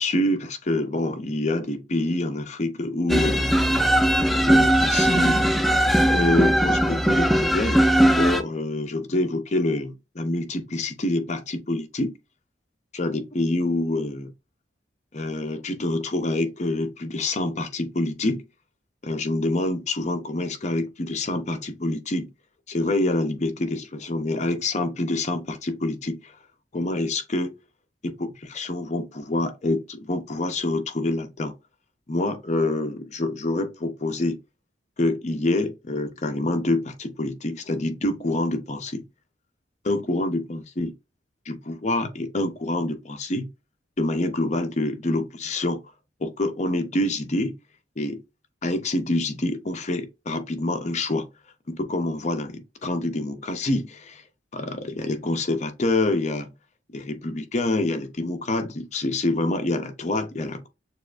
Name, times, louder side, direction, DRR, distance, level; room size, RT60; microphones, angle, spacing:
voice 1, 0.0-3.8 4.3-5.5 6.1-12.2 12.9-14.3 15.1-18.4 19.0-22.3 22.7-26.3 26.7-27.5 28.0-31.5 32.1-34.4 35.0-39.0 39.8-40.9 41.5-43.5 44.0-45.8 46.2-47.5 48.0-48.2 48.6-51.3 51.7-54.2 54.5-56.5 56.9-60.7, left 2 dB, 40° left, 0.6 m, -26 dB
sound 1, 3.1-8.4, right 1 dB, ahead, 0.3 m, -19 dB
6.6 x 2.4 x 2.4 m
head